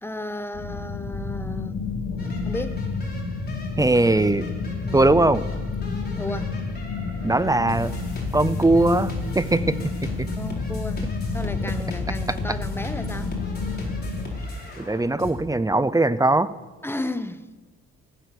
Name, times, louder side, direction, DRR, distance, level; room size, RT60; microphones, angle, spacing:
voice 1, 0.0-1.8 2.2-2.8 4.8-5.1 6.2-6.5 10.3-11.0 11.3-13.3 16.8-17.5, left 1 dB, 10° left, 12 dB, 0.9 m, -33 dB
sound 1, 0.5-14.2, left 4 dB, 55° left, 3.1 m, -30 dB
sound 2, 2.2-15.3, left 2 dB, 30° left, 4.7 m, -37 dB
voice 2, 3.8-4.5 4.9-5.4 7.2-7.9 8.3-9.8 14.8-16.5, right 2 dB, 10° right, 17 dB, 0.5 m, -20 dB
16.0 x 9.2 x 6.8 m, 1.3 s
cardioid pair, 90°, 30 cm